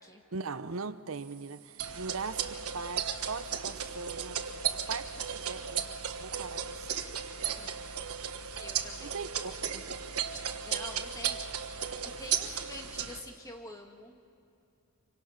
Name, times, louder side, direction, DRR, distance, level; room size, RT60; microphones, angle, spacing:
voice 1, 0.3-4.4 4.7-5.9 6.2-7.0 9.0-9.8, right 4 dB, 65° right, 13 dB, 0.8 m, -40 dB
sound 1, 1.8-13.2, right 8 dB, 90° right, 1.3 m, -35 dB
voice 2, 7.4-7.8 8.6-9.2 10.6-14.2, left 1 dB, 15° left, 3 dB, 1.8 m, -47 dB
26.5 x 24.5 x 5.8 m, 2.7 s
head